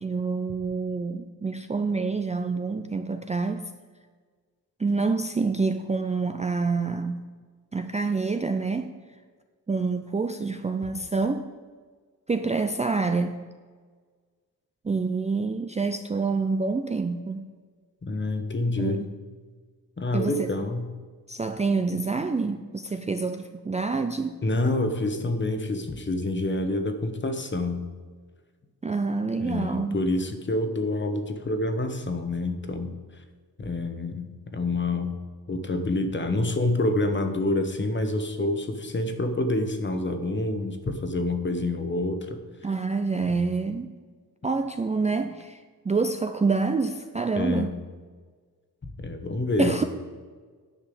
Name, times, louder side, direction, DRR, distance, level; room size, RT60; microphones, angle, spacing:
voice 1, 0.0-3.7 4.8-7.3 7.7-8.9 9.7-11.5 12.3-13.4 14.8-17.5 18.8-19.0 20.1-20.5 21.3-24.4 28.8-30.0 42.6-44.0 44.4-47.7 49.6-49.8, right 4 dB, 20° right, 7 dB, 0.4 m, -27 dB
voice 2, 18.0-19.0 20.0-20.9 24.4-27.8 29.4-33.0 33.6-35.2 35.5-42.4 43.2-43.5 47.4-47.7 48.8-49.8, left 2 dB, 30° left, 7 dB, 1.2 m, -27 dB
10.0 x 5.5 x 7.8 m, 1.5 s
wide cardioid pair, 120°, 38 cm